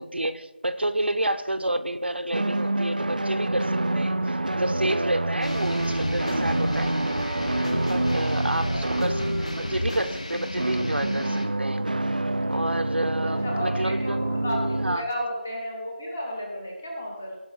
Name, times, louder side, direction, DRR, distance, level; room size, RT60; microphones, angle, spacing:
voice 1, 0.0-7.0 7.9-11.8 12.5-15.1, right 1 dB, 65° right, 10 dB, 0.8 m, -29 dB
sound 1, 2.3-10.3 10.5-15.0, right 1 dB, 50° right, 0.4 m, -27 dB
sound 2, 5.4-11.5, left 1 dB, 35° left, 1.4 m, -32 dB
voice 2, 13.2-17.3, equal, 10° left, -1 dB, 0.8 m, -33 dB
16.5 x 5.5 x 5.5 m, 1.2 s
figure-of-eight pair, 175°, 6 cm